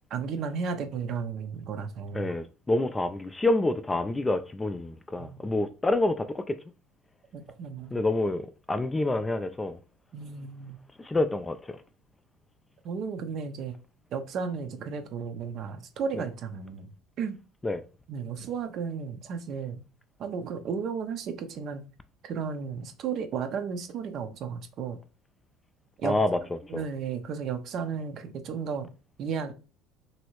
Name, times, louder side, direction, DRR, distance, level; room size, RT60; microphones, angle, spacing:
voice 1, 0.1-2.3 5.2-5.5 7.3-8.0 10.1-10.8 12.8-13.7 14.1-16.9 17.2-17.4 18.1-19.8 20.2-21.8 22.2-25.0 26.0-26.2 26.7-28.9 29.2-29.5, right 6 dB, 55° right, 0.5 m, -34 dB
voice 2, 2.1-6.6 7.9-9.8 11.0-11.8 17.6-17.8 26.0-26.4 26.7-26.8, left 2 dB, 15° left, 0.3 m, -27 dB
3.0 x 2.7 x 3.0 m
supercardioid pair, 85°, 0 cm